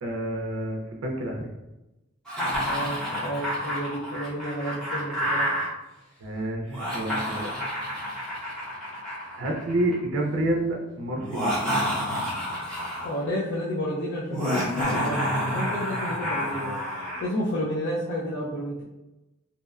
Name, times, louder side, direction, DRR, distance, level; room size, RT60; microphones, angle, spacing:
voice 1, 0.0-1.5 6.2-7.5 9.4-11.8, right 1 dB, 90° right, 0 dB, 0.5 m, -29 dB
Laughter, 2.3-5.7 6.6-9.9 11.2-13.2 14.3-17.2, equal, 5° left, 0.7 m, -29 dB
voice 2, 2.6-5.5 13.0-16.7 17.2-18.8, equal, 60° left, -6 dB, 0.4 m, -31 dB
2.7 x 2.1 x 2.3 m, 0.99 s
head